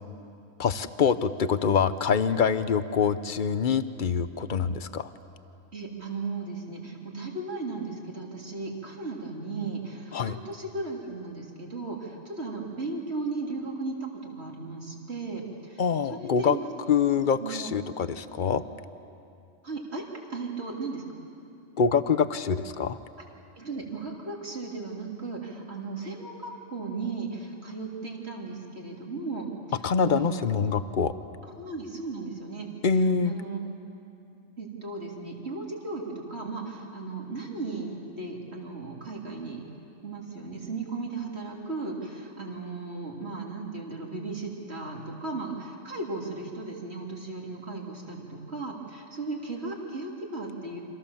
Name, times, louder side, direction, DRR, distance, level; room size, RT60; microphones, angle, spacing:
voice 1, 0.6-5.1 10.1-10.4 15.8-16.6 16.9-18.6 21.8-23.0 29.8-31.1 32.8-33.3, left 6 dB, 45° left, 13 dB, 0.9 m, -25 dB
voice 2, 5.7-15.8 16.1-16.6 17.4-17.7 19.6-20.0 20.3-21.0 23.6-30.7 31.6-32.7 33.2-33.6 34.6-39.6 40.0-50.8, right 3 dB, 50° right, -1 dB, 3.6 m, -36 dB
29.0 x 26.0 x 7.2 m, 2.7 s
omnidirectional pair, 1.4 m